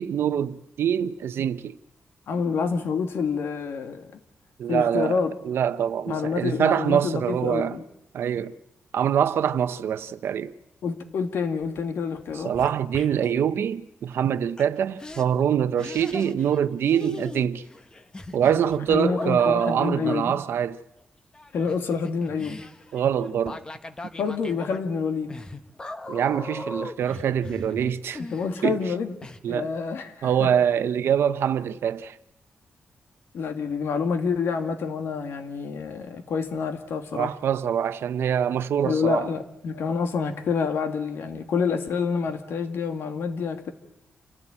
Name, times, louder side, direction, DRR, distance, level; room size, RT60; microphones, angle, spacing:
voice 1, 0.0-1.8 4.6-7.8 8.1-8.6 8.9-10.5 12.3-17.6 18.3-20.8 22.9-23.6 26.1-28.2 28.6-28.8 29.4-29.7 30.2-32.2 37.1-39.3, right 8 dB, 75° right, 0.8 m, -24 dB
voice 2, 2.3-4.1 4.7-5.3 6.1-7.8 10.8-12.5 18.9-20.4 21.5-22.6 24.2-25.3 28.3-29.1 29.5-30.3 33.3-37.3 38.8-43.7, left 5 dB, 75° left, 2.2 m, -27 dB
sound 1, 12.2-13.4 14.6-14.7 15.0-15.3 15.8-16.6 16.8-20.2 21.3-28.9 29.2-29.4, left 2 dB, 20° left, 1.0 m, -39 dB
28.0 x 15.0 x 8.8 m
wide cardioid pair, 155°, 4 cm